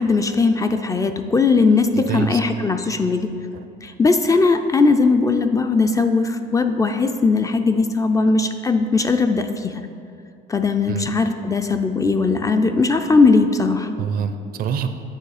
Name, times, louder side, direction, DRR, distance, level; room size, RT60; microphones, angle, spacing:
voice 1, 0.0-3.3 3.8-9.8 10.5-13.9, left 4 dB, 20° left, 7 dB, 0.4 m, -19 dB
voice 2, 1.9-2.4 3.5-3.6 10.9-11.1 14.0-14.9, right 7 dB, 60° right, 9 dB, 0.5 m, -25 dB
8.8 x 4.8 x 4.1 m, 2.4 s
cardioid pair, 110°, 17 cm